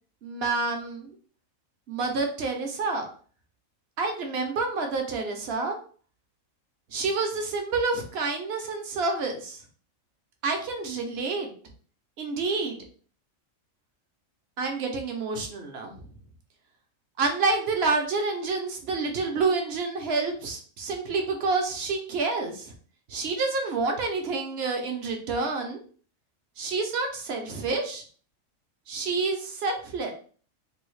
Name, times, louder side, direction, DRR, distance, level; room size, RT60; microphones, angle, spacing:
voice 1, 0.2-1.2 1.9-3.1 4.0-5.8 6.9-9.6 10.4-11.5 12.2-12.8 14.6-16.0 17.2-22.7 23.1-25.8 26.6-28.0 28.9-30.1, right 3 dB, 60° right, 3 dB, 0.8 m, -28 dB
3.4 x 2.3 x 3.1 m, 0.43 s
omnidirectional pair, 1.4 m